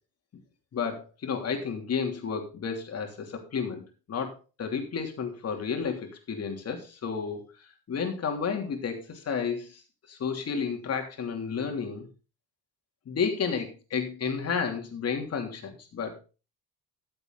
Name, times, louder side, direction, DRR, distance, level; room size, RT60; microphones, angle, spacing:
voice 1, 0.7-9.8 10.1-12.1 13.0-16.2, left 6 dB, 45° left, 4 dB, 3.2 m, -32 dB
14.0 x 7.8 x 4.0 m, 0.33 s
cardioid pair, 105°, 35 cm